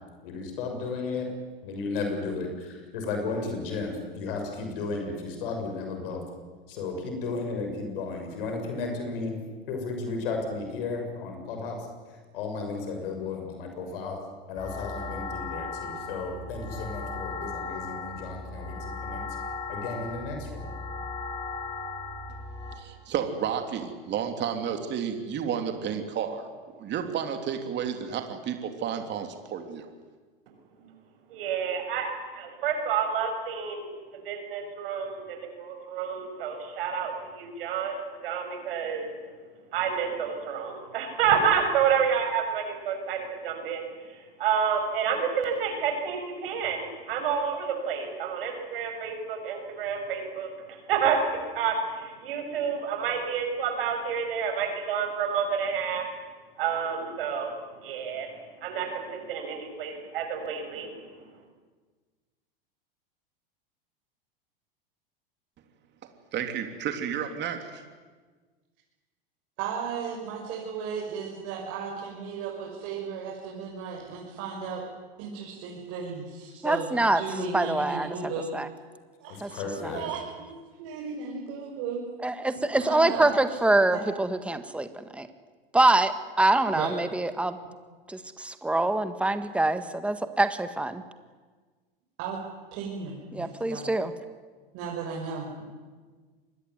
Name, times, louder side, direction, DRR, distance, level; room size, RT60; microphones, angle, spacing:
voice 1, 0.2-1.3 1.6-6.2 6.7-9.4 9.7-14.2 14.5-19.2 19.7-20.7 79.3-80.1, left 4 dB, 70° left, 4 dB, 6.9 m, -34 dB
sound 1, 14.6-22.7, left 3 dB, 20° left, 6.8 m, -37 dB
voice 2, 22.7-29.9 66.3-67.8, right 8 dB, 35° right, 6 dB, 3.2 m, -31 dB
voice 3, 31.3-33.9 34.2-39.1 39.7-43.8 44.4-50.5 50.9-51.2 51.5-56.0 56.6-57.5 57.8-58.3 58.6-60.9, right 7 dB, 70° right, 4 dB, 6.6 m, -29 dB
voice 4, 69.6-74.8 75.2-78.5 79.2-79.6 79.9-82.0 82.7-83.6 83.9-84.0 86.7-86.9 92.2-92.4 92.7-93.9 94.7-95.6, right 6 dB, 55° right, -2 dB, 6.5 m, -35 dB
voice 5, 76.6-77.2 77.5-78.7 79.4-79.5 79.8-79.9 82.2-85.3 85.7-87.6 88.1-91.0 93.3-94.1, right 2 dB, 5° right, 10 dB, 1.7 m, -25 dB
25.5 x 20.5 x 9.6 m, 1.4 s
hypercardioid pair, 100°, 29 cm